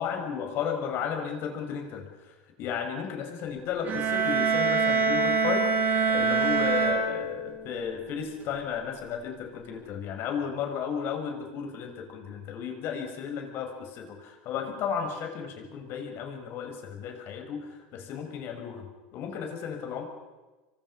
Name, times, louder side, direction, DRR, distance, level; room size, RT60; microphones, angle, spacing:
voice 1, 0.0-5.8 6.1-20.0, left 7 dB, 50° left, 4 dB, 6.1 m, -34 dB
sound 1, 3.8-7.7, right 4 dB, 40° right, 7.8 m, -25 dB
28.5 x 23.5 x 5.7 m, 1.2 s
supercardioid pair, 120°, 5 cm